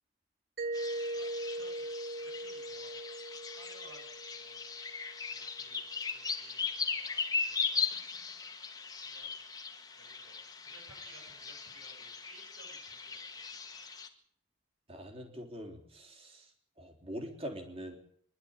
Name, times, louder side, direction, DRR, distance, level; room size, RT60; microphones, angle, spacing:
Mallet percussion, 0.6-5.2, right 1 dB, 50° right, 1.2 m, -40 dB
sound 1, 0.7-14.1, left 5 dB, 20° left, 1.9 m, -39 dB
voice 1, 0.9-3.2 3.5-4.7 5.3-7.9 9.0-9.4 9.9-13.8, right 2 dB, 80° right, 1 dB, 7.8 m, -59 dB
voice 2, 14.9-16.5 16.8-18.0, equal, 30° right, 3 dB, 3.4 m, -43 dB
25.5 x 11.5 x 8.9 m, 0.65 s
head